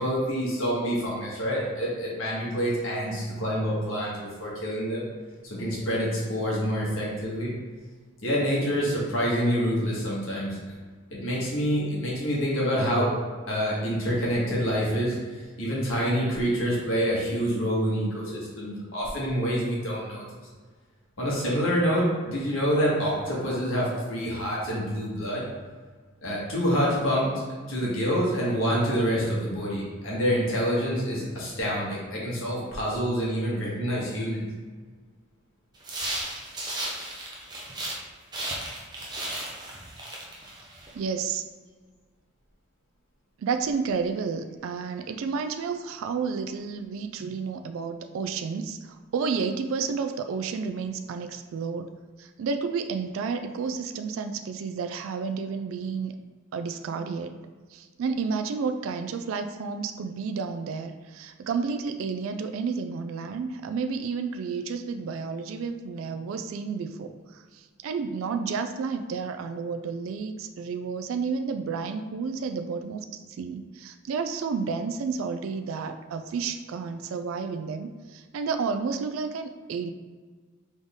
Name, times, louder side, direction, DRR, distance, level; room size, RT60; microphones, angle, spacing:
voice 1, 0.0-5.1 5.4-7.5 8.2-10.6 11.1-13.1 13.5-20.2 21.2-25.4 26.2-27.3 27.7-34.4, equal, 70° left, -5 dB, 1.5 m, -27 dB
sound 1, 35.8-38.0 38.3-40.9, right 1 dB, 20° right, 0.6 m, -35 dB
voice 2, 40.9-41.4 43.4-51.9 52.2-56.1 56.5-57.4 57.7-73.1 73.4-79.9, right 5 dB, 75° right, 7 dB, 0.3 m, -31 dB
3.9 x 3.7 x 3.5 m, 1.5 s
head